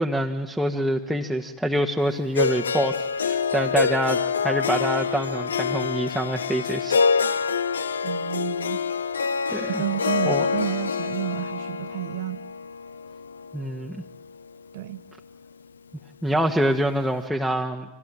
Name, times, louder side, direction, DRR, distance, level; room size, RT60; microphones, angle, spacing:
voice 1, 0.0-7.4 9.5-9.8 10.2-10.5 13.5-14.0 16.2-17.8, right 1 dB, ahead, 1.6 m, -26 dB
Harp, 2.3-14.5, left 5 dB, 70° left, 1.0 m, -26 dB
voice 2, 8.0-8.8 9.8-12.4 14.7-15.0, right 16 dB, 50° right, 1.2 m, -31 dB
30.0 x 26.0 x 7.7 m
figure-of-eight pair, 90°, 0 cm